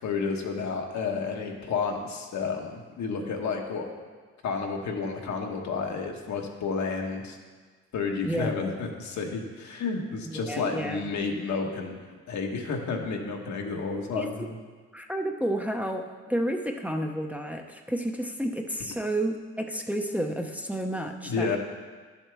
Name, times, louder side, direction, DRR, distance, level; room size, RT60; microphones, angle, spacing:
voice 1, 0.0-3.9 4.4-7.4 7.9-12.0 12.3-14.5 21.2-21.6, left 4 dB, 65° left, 2 dB, 1.3 m, -31 dB
voice 2, 10.2-11.0 14.1-14.5 14.9-21.6, right 1 dB, 5° right, 3 dB, 0.7 m, -31 dB
11.0 x 7.3 x 3.5 m, 1.5 s
cardioid pair, 90°, 30 cm